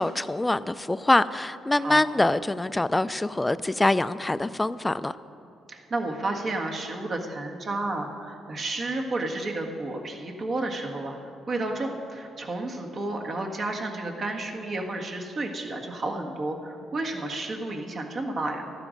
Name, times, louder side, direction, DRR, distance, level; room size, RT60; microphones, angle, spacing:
voice 1, 0.0-5.1, left 2 dB, 15° left, 0.4 m, -24 dB
voice 2, 5.7-11.2 11.5-18.7, right 2 dB, 45° right, 1.7 m, -31 dB
13.5 x 12.0 x 5.2 m
cardioid pair, 90°, 0 cm